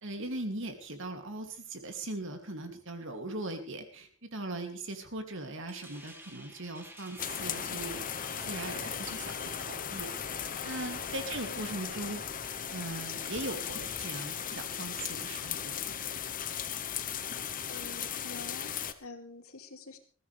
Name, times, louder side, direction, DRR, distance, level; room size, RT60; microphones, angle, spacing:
voice 1, 0.0-8.0 8.4-12.2 12.7-16.0, right 2 dB, 60° right, 5 dB, 2.8 m, -40 dB
sound 1, 5.7-14.4, right 1 dB, 10° right, 2.3 m, -53 dB
sound 2, 7.2-18.9, left 8 dB, 40° left, 1.0 m, -37 dB
voice 2, 17.7-20.0, left 3 dB, 85° left, 5 dB, 2.8 m, -47 dB
20.5 x 15.5 x 3.5 m, 0.39 s
head